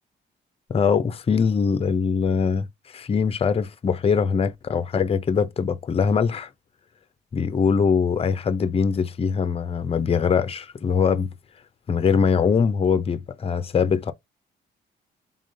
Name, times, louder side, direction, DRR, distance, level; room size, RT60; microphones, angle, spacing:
voice 1, 0.7-6.5 7.3-11.3 11.9-14.1, left 6 dB, 30° left, 0.5 m, -22 dB
3.6 x 3.6 x 2.6 m
cardioid pair, 90°, 20 cm